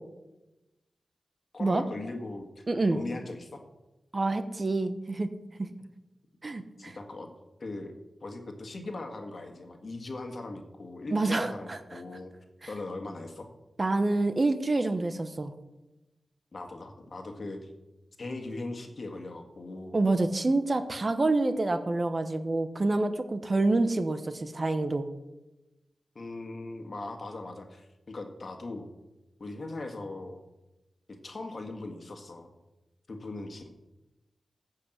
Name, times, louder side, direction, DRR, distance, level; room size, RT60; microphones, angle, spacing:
voice 1, 1.5-2.6 2.9-3.6 6.8-7.3 7.6-7.9 8.2-12.3 12.7-13.5 16.5-17.7 18.2-20.0 26.2-28.9 29.4-30.4 31.1-32.5 33.1-33.7, left 2 dB, 55° left, 5 dB, 1.7 m, -39 dB
voice 2, 2.7-3.0 4.1-5.3 5.6-5.7 6.4-6.9 11.1-12.0 13.8-15.5 19.9-25.1, right 2 dB, 40° right, 9 dB, 1.0 m, -27 dB
14.0 x 5.7 x 7.9 m, 1.0 s
cardioid pair, 70°, 0 cm